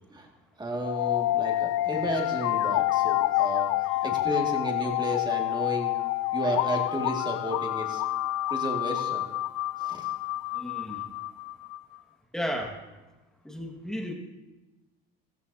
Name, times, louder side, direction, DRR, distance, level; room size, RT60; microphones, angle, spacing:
voice 1, 0.6-6.0 6.3-8.0 8.5-9.3 9.8-10.1, right 1 dB, 15° right, 1 dB, 2.1 m, -32 dB
sound 1, 0.8-11.8, left 16 dB, 60° left, 0.5 m, -28 dB
voice 2, 10.5-11.0 12.3-12.7 13.4-14.1, equal, ahead, 1 dB, 1.7 m, -34 dB
16.5 x 14.0 x 2.8 m, 1.1 s
supercardioid pair, 125°, 30 cm